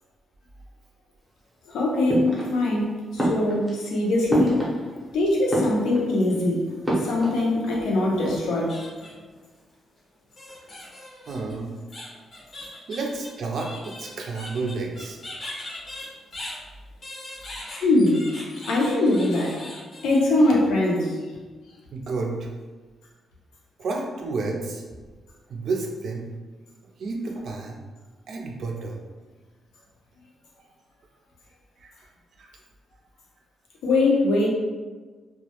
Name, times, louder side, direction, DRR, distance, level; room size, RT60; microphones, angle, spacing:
voice 1, 1.7-4.6 5.1-6.6 7.0-8.8 17.8-18.3 18.7-19.6 20.0-21.2 33.8-34.5, left 2 dB, 80° left, -2 dB, 0.5 m, -22 dB
sound 1, 2.1-2.8 3.2-5.1 5.4-6.2 6.8-8.7, right 1 dB, 5° right, 0.6 m, -28 dB
sound 2, 8.4-9.3 10.4-16.6 17.0-20.2, left 1 dB, 35° left, 0.6 m, -40 dB
voice 2, 11.3-11.7 12.9-15.2 21.9-22.5 23.8-24.8 25.5-26.2 27.0-27.8 28.3-29.0 31.8-31.9 32.4-32.5, right 3 dB, 55° right, 1 dB, 0.4 m, -30 dB
2.2 x 2.0 x 2.8 m, 1.4 s
cardioid pair, 155°, 0 cm